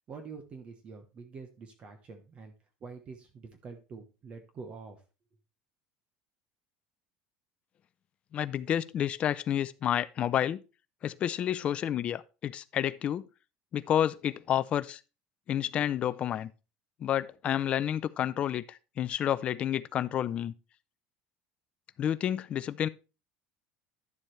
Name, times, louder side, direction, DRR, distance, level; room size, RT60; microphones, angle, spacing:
voice 1, 0.1-2.5 2.8-5.0, right 4 dB, 30° right, 1.0 m, -46 dB
voice 2, 8.3-10.6 11.0-13.2 13.7-15.0 15.5-16.5 17.0-20.5 22.0-22.9, left 10 dB, 30° left, 0.4 m, -30 dB
10.5 x 7.2 x 3.2 m
cardioid pair, 165°, 4 cm